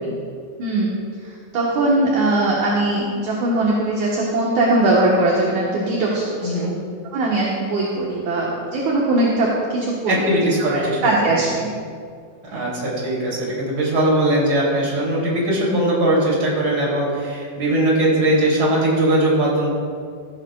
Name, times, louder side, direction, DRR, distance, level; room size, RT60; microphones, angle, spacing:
voice 1, 0.6-1.0 1.2-6.5 7.1-10.3 10.7-11.7 12.5-12.7, right 2 dB, 60° right, -4 dB, 2.2 m, -20 dB
voice 2, 6.4-6.7 10.1-11.4 12.5-19.7, right 1 dB, 30° right, -5 dB, 3.3 m, -20 dB
15.0 x 14.0 x 2.4 m, 2.1 s
omnidirectional pair, 4.7 m